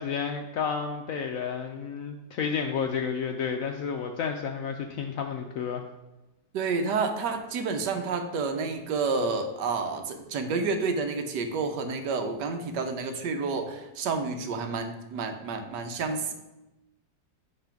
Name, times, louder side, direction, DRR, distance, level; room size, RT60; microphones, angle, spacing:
voice 1, 0.0-5.8, left 6 dB, 75° left, 4 dB, 0.8 m, -31 dB
voice 2, 6.5-16.3, right 4 dB, 75° right, 6 dB, 1.3 m, -29 dB
7.9 x 3.4 x 5.7 m, 0.99 s
omnidirectional pair, 1.9 m